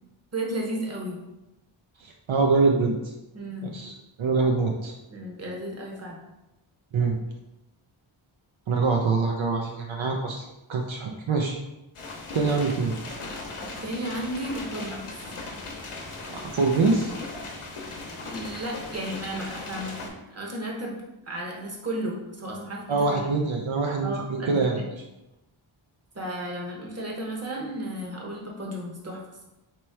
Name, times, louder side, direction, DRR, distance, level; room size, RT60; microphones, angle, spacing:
voice 1, 0.3-1.2 3.3-3.7 5.1-6.2 13.6-15.2 18.2-21.0 21.3-23.3 24.0-24.8 26.1-29.4, right 1 dB, 30° right, -1 dB, 0.9 m, -34 dB
voice 2, 2.0-3.1 3.6-4.9 6.9-7.2 8.7-11.6 12.3-12.9 16.3-17.1 22.9-24.8, right 4 dB, 70° right, 1 dB, 0.6 m, -24 dB
sound 1, 11.9-20.1, left 3 dB, 85° left, 0.8 m, -38 dB
3.1 x 3.0 x 4.5 m, 0.96 s
wide cardioid pair, 90°, 49 cm